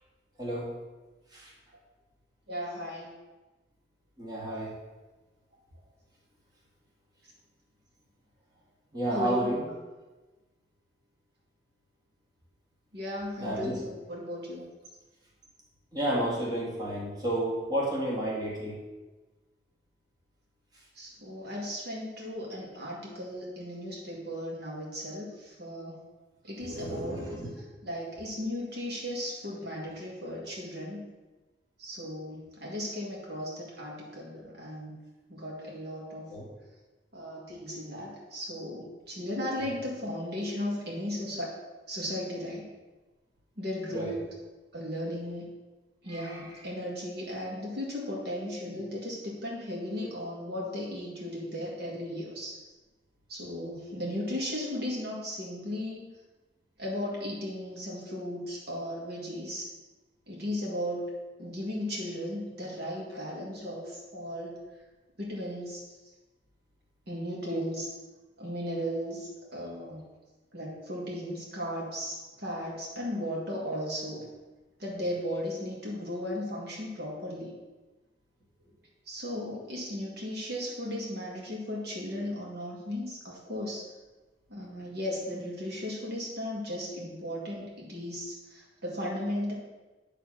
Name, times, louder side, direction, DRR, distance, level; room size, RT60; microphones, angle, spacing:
voice 1, 0.4-0.7 1.3-1.5 4.2-4.8 8.9-9.6 13.4-13.8 15.9-18.8 26.6-27.5 36.3-36.4 39.5-39.6 43.9-44.1 46.1-46.4, right 1 dB, 25° right, -5 dB, 1.9 m, -31 dB
voice 2, 2.5-3.2 9.1-9.5 12.9-14.6 21.0-26.0 26.4-27.2 27.8-31.0 31.8-35.0 35.3-36.3 37.1-41.5 41.9-42.7 43.6-44.3 44.7-45.6 46.0-52.6 53.3-56.1 56.8-59.7 60.3-61.1 61.4-64.6 65.2-65.8 67.1-67.9 68.4-70.0 70.5-74.3 74.8-77.5 79.1-83.9 84.5-89.5, left 1 dB, 65° right, -3 dB, 1.8 m, -36 dB
9.4 x 3.3 x 6.1 m, 1.2 s
head